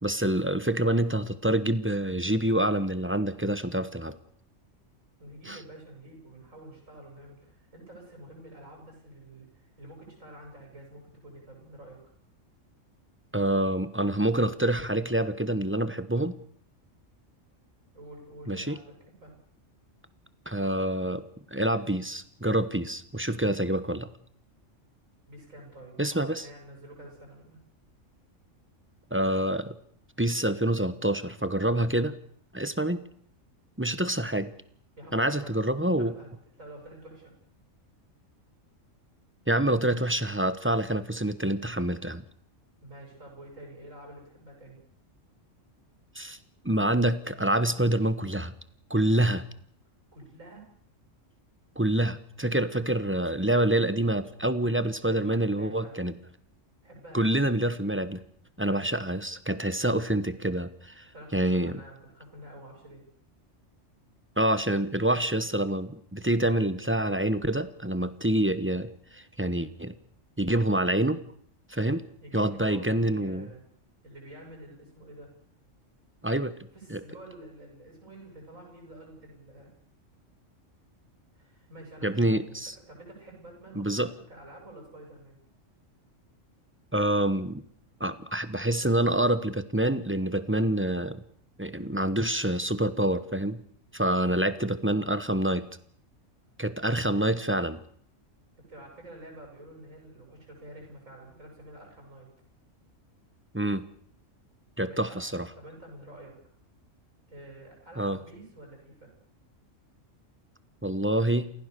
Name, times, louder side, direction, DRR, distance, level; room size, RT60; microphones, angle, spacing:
voice 1, 0.0-4.2 5.5-5.6 13.3-16.3 18.5-18.8 20.5-21.2 21.5-24.1 26.0-26.5 29.1-29.8 30.2-32.2 32.5-33.0 33.8-34.5 35.1-36.1 39.5-42.2 46.1-46.4 46.6-48.5 48.9-49.4 51.8-56.1 57.1-58.2 58.6-61.8 64.4-69.9 70.4-71.2 71.7-72.0 72.3-73.5 76.2-76.6 76.9-77.0 82.0-82.7 83.7-84.1 86.9-87.6 88.0-91.2 91.6-93.6 93.9-95.7 96.6-97.8 103.5-103.9 104.8-105.5 108.0-108.2 110.8-111.5, right 1 dB, 10° right, 13 dB, 1.1 m, -27 dB
voice 2, 5.2-12.0 17.9-19.3 25.3-27.6 35.0-35.5 36.0-36.3 36.6-37.3 42.8-44.8 50.1-50.6 55.0-56.1 56.8-57.3 61.1-63.0 72.2-73.6 74.0-75.3 76.7-79.7 81.3-82.6 82.9-85.4 98.7-102.3 104.8-105.2 105.5-106.3 107.3-109.1, right 1 dB, 90° right, 0 dB, 8.5 m, -48 dB
29.0 x 16.0 x 6.9 m, 0.62 s
omnidirectional pair, 1.3 m